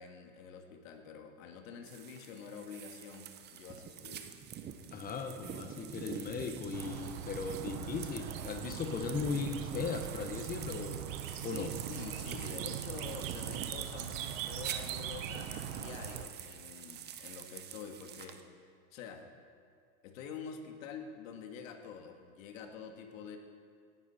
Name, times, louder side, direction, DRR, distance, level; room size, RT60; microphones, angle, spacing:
voice 1, 0.0-4.2 11.3-18.4 18.9-19.3 20.0-23.4, left 6 dB, 65° left, 4 dB, 1.9 m, -47 dB
sound 1, 1.9-18.4, right 9 dB, 25° right, 0.7 m, -45 dB
voice 2, 4.9-11.2 11.4-11.7, left 5 dB, 20° left, 6 dB, 1.2 m, -37 dB
sound 2, 6.7-16.3, right 10 dB, 60° right, 1.0 m, -42 dB
17.0 x 10.5 x 4.3 m, 2.2 s
hypercardioid pair, 120°, 44 cm